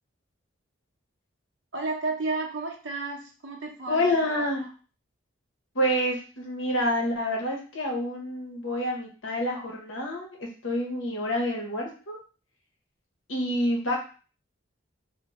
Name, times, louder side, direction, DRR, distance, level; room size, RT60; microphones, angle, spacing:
voice 1, 1.7-4.5, right 3 dB, 70° right, 1 dB, 0.6 m, -32 dB
voice 2, 3.9-4.6 5.7-12.2 13.3-14.0, left 1 dB, 80° left, 0 dB, 0.8 m, -28 dB
2.8 x 2.1 x 2.9 m, 0.37 s
head